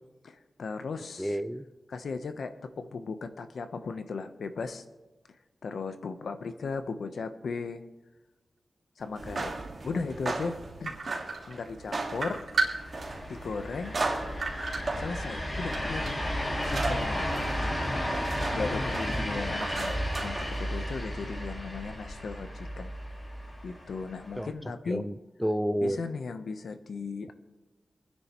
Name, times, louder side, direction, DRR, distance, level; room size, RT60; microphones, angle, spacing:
voice 1, 0.2-1.4 1.9-4.8 5.6-7.8 9.0-11.0 11.5-12.4 13.3-14.0 15.0-16.2 16.6-17.3 18.5-22.9 23.6-25.0 25.8-27.3, left 4 dB, 75° left, 9 dB, 0.9 m, -37 dB
voice 2, 1.2-1.7 19.2-19.3 24.4-24.5 24.9-26.0, equal, ahead, 12 dB, 0.4 m, -30 dB
sound 1, 9.1-21.0, right 3 dB, 40° right, 1.9 m, -37 dB
sound 2, 10.8-11.8 12.1-13.2 13.7-13.8 14.4-15.4 15.7-16.3, right 3 dB, 65° right, 2.7 m, -32 dB
sound 3, 12.6-24.5, equal, 25° left, 2.0 m, -33 dB
27.0 x 9.8 x 3.1 m, 1.2 s
wide cardioid pair, 155°, 0 cm